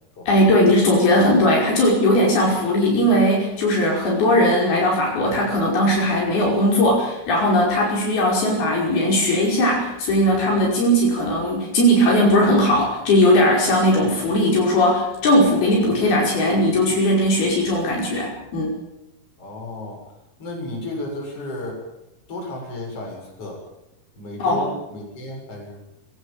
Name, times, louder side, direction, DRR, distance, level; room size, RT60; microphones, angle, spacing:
voice 1, 0.3-18.8 24.4-24.6, left 1 dB, 70° left, -2 dB, 7.3 m, -18 dB
voice 2, 19.4-20.0 20.4-21.8 22.3-23.6 24.2-25.8, left 1 dB, 35° left, 0 dB, 8.0 m, -33 dB
24.0 x 17.0 x 9.2 m, 0.91 s
omnidirectional pair, 4.5 m